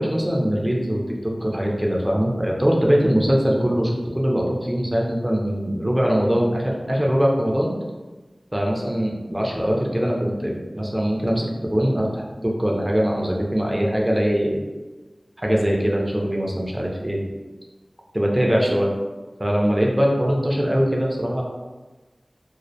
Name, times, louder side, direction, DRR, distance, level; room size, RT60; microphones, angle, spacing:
voice 1, 0.0-7.7 8.5-12.2 12.6-14.6 15.4-17.2 18.1-18.9 19.4-21.4, equal, 15° right, -2 dB, 0.5 m, -22 dB
2.2 x 2.1 x 2.6 m, 1.2 s
wide cardioid pair, 50°, 0 cm